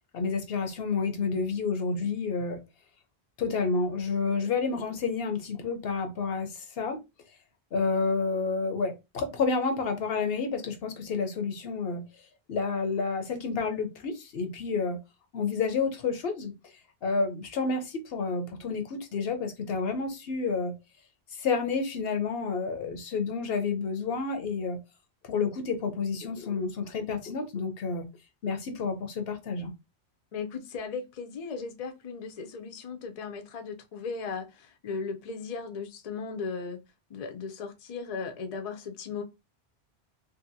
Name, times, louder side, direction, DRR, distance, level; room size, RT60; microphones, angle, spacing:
voice 1, 0.1-2.6 3.4-7.0 7.7-12.0 12.5-15.0 15.3-16.5 17.0-20.7 21.3-24.8 25.2-28.1 28.4-29.7, left 4 dB, 70° left, 0.8 m, -30 dB
voice 2, 30.3-36.8 37.1-39.2, left 5 dB, 50° left, 0.5 m, -37 dB
2.7 x 2.5 x 2.6 m
omnidirectional pair, 1.1 m